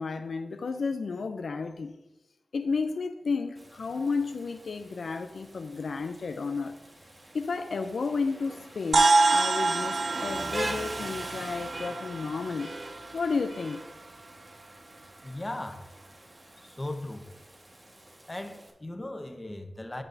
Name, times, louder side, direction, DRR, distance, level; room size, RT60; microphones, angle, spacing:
voice 1, 0.0-1.9 2.5-6.8 7.3-12.7 13.1-13.8, left 4 dB, 80° left, 0.4 m, -32 dB
Rain, 3.5-18.7, right 1 dB, 40° right, 1.5 m, -43 dB
sound 1, 8.9-13.5, right 3 dB, 70° right, 0.4 m, -27 dB
voice 2, 15.2-15.9 16.6-17.3 18.3-20.0, left 1 dB, 30° left, 1.0 m, -37 dB
11.0 x 6.0 x 2.7 m
cardioid pair, 40°, 0 cm